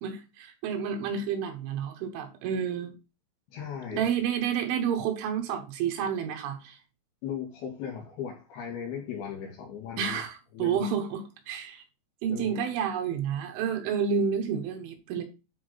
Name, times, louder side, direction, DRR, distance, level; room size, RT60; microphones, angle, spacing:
voice 1, 0.0-2.9 3.9-6.8 10.0-11.8 12.2-15.2, right 7 dB, 80° right, 3.7 m, -30 dB
voice 2, 3.5-4.1 7.2-10.2 10.5-10.8 12.3-12.5, left 8 dB, 60° left, 4.4 m, -37 dB
10.0 x 4.5 x 4.0 m
omnidirectional pair, 5.5 m